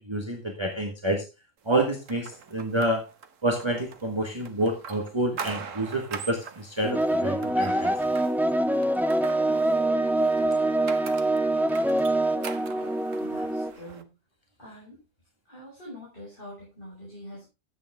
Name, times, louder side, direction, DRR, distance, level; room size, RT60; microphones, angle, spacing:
voice 1, 0.1-1.2 1.6-3.1 3.4-7.9, right 1 dB, 20° right, 2 dB, 1.5 m, -28 dB
sound 1, 1.7-14.0, right 6 dB, 75° right, 1.5 m, -42 dB
sound 2, 6.8-13.7, right 1 dB, ahead, 0.8 m, -25 dB
voice 2, 13.2-14.2 14.6-15.0 15.4-17.5, equal, 40° left, -5 dB, 6.0 m, -44 dB
12.5 x 8.4 x 3.6 m, 0.26 s
omnidirectional pair, 1.3 m